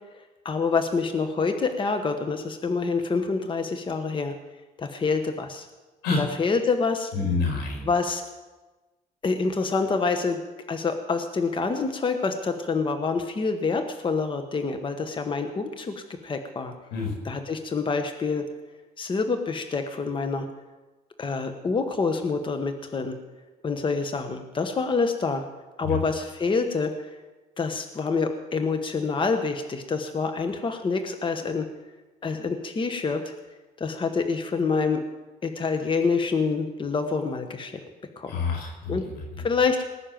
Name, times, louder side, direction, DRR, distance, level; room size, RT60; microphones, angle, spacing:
voice 1, 0.1-4.3 4.8-5.7 6.1-7.1 7.8-8.2 9.2-10.4 10.7-15.9 16.2-16.7 17.2-18.4 19.0-20.5 21.2-23.2 23.6-25.4 25.8-27.1 27.6-31.7 32.2-33.3 33.8-35.0 35.4-37.8 38.2-38.4 38.9-39.0 39.4-39.8, left 4 dB, 30° left, 7 dB, 1.2 m, -26 dB
voice 2, 7.1-7.9 16.9-17.1 25.8-26.0 38.3-39.4, left 4 dB, 90° left, 1 dB, 4.9 m, -28 dB
19.0 x 6.5 x 9.1 m, 1.2 s
cardioid pair, 110°, 17 cm